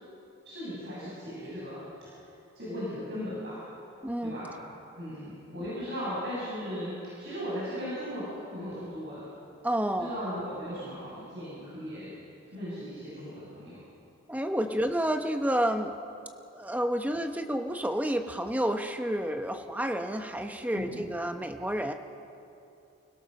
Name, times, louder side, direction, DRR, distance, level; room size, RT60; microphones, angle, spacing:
voice 1, 0.5-1.8 2.5-3.6 4.2-4.5 5.0-9.2 9.9-12.1 12.5-13.8 20.7-21.1, equal, 60° right, -9 dB, 7.2 m, -37 dB
voice 2, 4.0-4.4 9.6-10.1 14.3-16.0 16.5-21.9, right 1 dB, 10° right, 5 dB, 1.0 m, -30 dB
29.5 x 17.0 x 6.6 m, 2.7 s
head